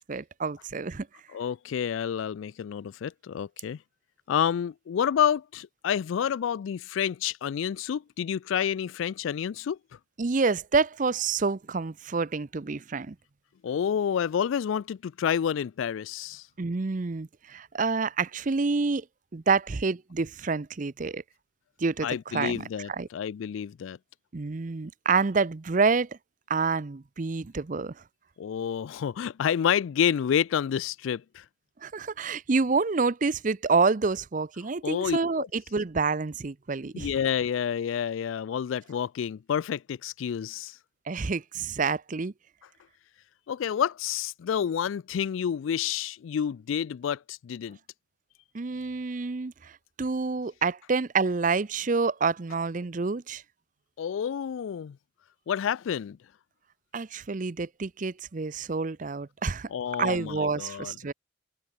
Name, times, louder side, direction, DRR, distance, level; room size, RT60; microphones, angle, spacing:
voice 1, 0.1-1.1 10.2-13.2 16.6-19.0 19.3-21.2 21.8-23.1 24.3-26.1 26.5-27.9 31.8-37.1 41.1-42.3 48.5-49.7 50.0-53.4 56.9-59.7 60.0-61.1, right 4 dB, 40° right, 0.6 m, -28 dB
voice 2, 1.3-3.8 4.3-9.8 13.6-16.5 22.0-24.0 28.4-31.4 34.8-35.5 36.9-40.8 43.5-47.8 54.0-55.0 55.5-56.2 59.7-60.9, left 8 dB, 80° left, 0.3 m, -29 dB
head